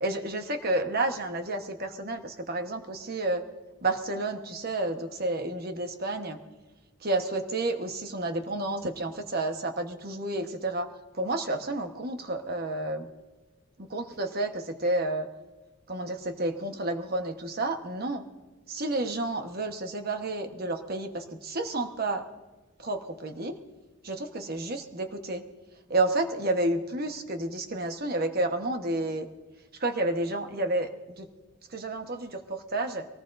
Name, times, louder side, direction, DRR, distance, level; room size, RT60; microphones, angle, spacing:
voice 1, 0.0-3.4 3.8-6.4 7.0-13.1 13.9-15.3 15.9-18.2 18.7-22.2 22.8-23.6 24.0-25.4 25.9-29.3 29.8-30.9 31.2-31.3 31.7-33.1, right 2 dB, 50° right, 6 dB, 1.2 m, -30 dB
23.0 x 19.0 x 2.6 m, 1.2 s
head